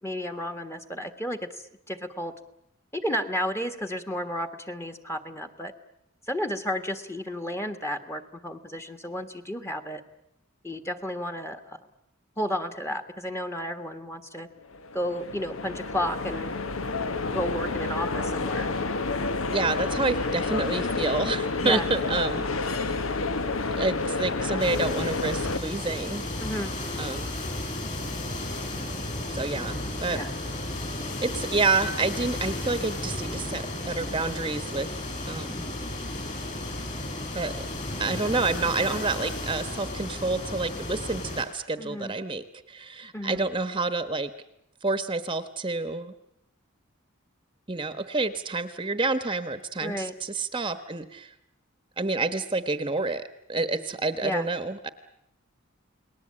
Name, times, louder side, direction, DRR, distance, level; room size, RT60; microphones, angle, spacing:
voice 1, 0.0-2.3 2.9-5.7 6.3-10.0 10.6-11.8 12.4-14.5 14.9-16.5 17.3-18.7 21.6-21.9 26.4-26.7 30.1-30.3 41.8-42.1 43.1-43.4 49.8-50.1 54.2-54.5, equal, 15° left, 5 dB, 1.6 m, -32 dB
sound 1, 14.7-25.6, left 3 dB, 80° left, 1.2 m, -29 dB
voice 2, 19.5-22.8 23.7-26.3 27.0-27.3 29.3-30.2 31.2-35.7 37.3-37.7 38.0-44.3 44.8-46.1 47.7-51.3 52.0-53.2 53.5-54.9, right 3 dB, 25° right, 10 dB, 1.1 m, -29 dB
sound 2, 24.6-41.5, left 1 dB, 35° left, 6.6 m, -33 dB
29.5 x 20.0 x 8.7 m, 0.78 s
head